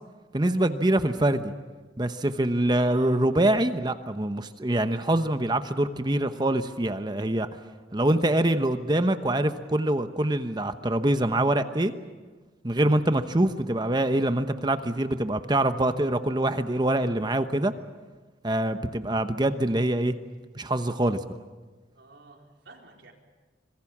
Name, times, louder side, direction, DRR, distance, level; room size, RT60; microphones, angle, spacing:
voice 1, 0.3-1.5 2.0-7.5 7.9-11.9 12.6-17.7 18.4-20.1 20.5-21.2, right 1 dB, 25° right, 9 dB, 1.0 m, -24 dB
voice 2, 2.7-3.1 21.9-23.1, right 3 dB, 80° right, 0 dB, 4.5 m, -50 dB
26.0 x 22.0 x 7.4 m, 1.3 s
head